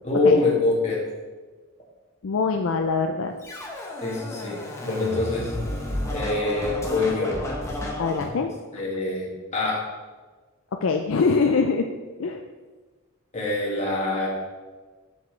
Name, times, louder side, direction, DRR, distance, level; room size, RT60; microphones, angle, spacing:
voice 1, 0.0-1.0 4.0-5.6 6.1-7.3 8.7-9.8 13.3-14.3, left 3 dB, 30° left, -5 dB, 2.2 m, -24 dB
voice 2, 2.2-3.3 8.0-8.5 10.7-11.9 12.2-12.4, left 4 dB, 65° left, 4 dB, 0.4 m, -23 dB
Scratching (performance technique), 3.4-8.3, left 1 dB, 15° left, 1.0 m, -32 dB
8.1 x 7.2 x 3.2 m, 1.3 s
head